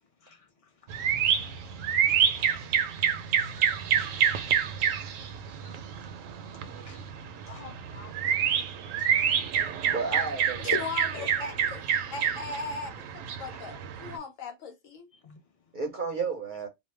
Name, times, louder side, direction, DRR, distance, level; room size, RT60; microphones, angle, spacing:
voice 1, 0.2-1.0 1.4-1.7 2.0-2.6 4.2-4.4 6.7-8.4 9.0-9.4 10.1-10.3 11.1-11.7 13.5-13.6 15.1-15.4, left 5 dB, 35° left, 0.6 m, -50 dB
sound 1, 0.9-14.2, right 8 dB, 80° right, 1.0 m, -28 dB
voice 2, 2.3-2.6 9.8-10.8 15.7-16.7, right 4 dB, 50° right, 0.6 m, -33 dB
voice 3, 10.6-11.8 12.1-15.1, left 4 dB, 80° left, 1.2 m, -37 dB
2.7 x 2.1 x 3.1 m
omnidirectional pair, 1.3 m